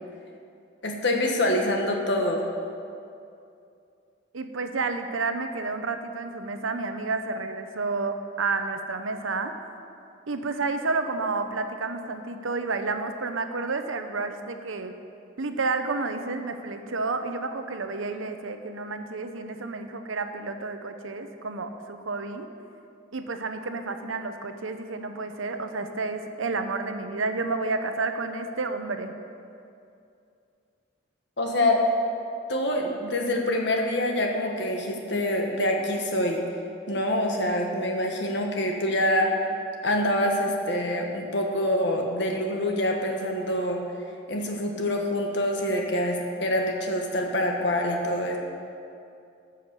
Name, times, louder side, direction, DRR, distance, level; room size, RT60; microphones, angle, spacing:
voice 1, 0.8-2.5 31.4-31.9 32.5-36.4 36.9-39.3 39.8-43.8 44.3-48.4, left 1 dB, 55° left, 1 dB, 1.4 m, -25 dB
voice 2, 4.3-9.5 10.3-14.9 15.4-22.5 23.1-29.1, right 3 dB, 75° right, 7 dB, 0.8 m, -30 dB
13.5 x 6.5 x 6.8 m, 2.5 s
head